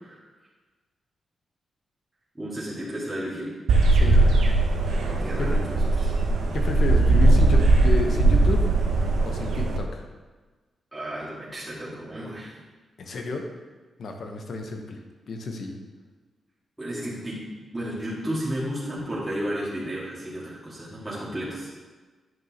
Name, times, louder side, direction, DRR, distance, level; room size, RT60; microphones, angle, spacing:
voice 1, 2.3-3.5 5.2-6.1 10.9-12.6 16.8-17.4 17.7-21.7, equal, 10° right, -9 dB, 2.0 m, -33 dB
sound 1, 3.7-9.8, right 2 dB, 80° right, 0.8 m, -19 dB
voice 2, 3.9-4.5 5.0-5.1 5.4-5.6 6.5-8.7 9.2-10.1 13.0-13.4 14.0-15.0 15.3-15.8, left 3 dB, 60° left, 3 dB, 1.0 m, -31 dB
9.1 x 5.4 x 2.9 m, 1.3 s
cardioid pair, 85°, 0 cm